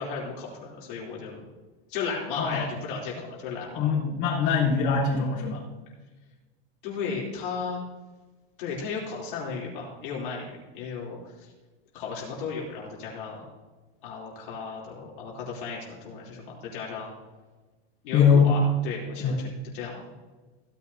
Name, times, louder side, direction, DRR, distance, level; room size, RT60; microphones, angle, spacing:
voice 1, 0.0-1.4 1.9-3.8 4.4-4.6 6.8-7.8 8.6-11.5 11.9-13.4 14.0-17.1 18.0-20.0, left 5 dB, 55° left, -4 dB, 3.0 m, -35 dB
voice 2, 3.7-5.6 18.1-18.5 19.2-19.4, left 6 dB, 35° left, -6 dB, 3.4 m, -22 dB
16.0 x 10.0 x 2.7 m, 1.2 s
supercardioid pair, 180°, 30 cm